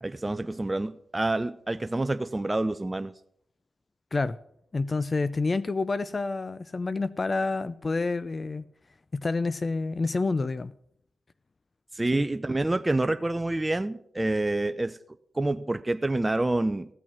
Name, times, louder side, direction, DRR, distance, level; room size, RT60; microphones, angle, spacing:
voice 1, 0.0-3.1 11.9-15.0 15.3-16.9, right 2 dB, 25° right, 0.6 m, -27 dB
voice 2, 4.7-8.6 9.1-10.7 12.1-12.2, left 3 dB, 40° left, 0.5 m, -28 dB
15.5 x 6.2 x 7.2 m
supercardioid pair, 45°, 0 cm